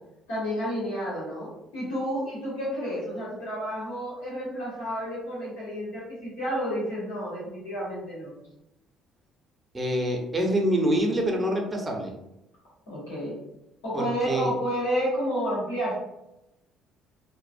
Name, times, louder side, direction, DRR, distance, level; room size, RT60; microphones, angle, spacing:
voice 1, 0.3-8.3 12.9-13.4 13.8-15.9, equal, 90° left, -8 dB, 1.0 m, -30 dB
voice 2, 9.7-12.1 13.9-14.5, right 1 dB, 20° right, 1 dB, 0.6 m, -26 dB
2.3 x 2.1 x 2.5 m, 0.89 s
hypercardioid pair, 60°, 0 cm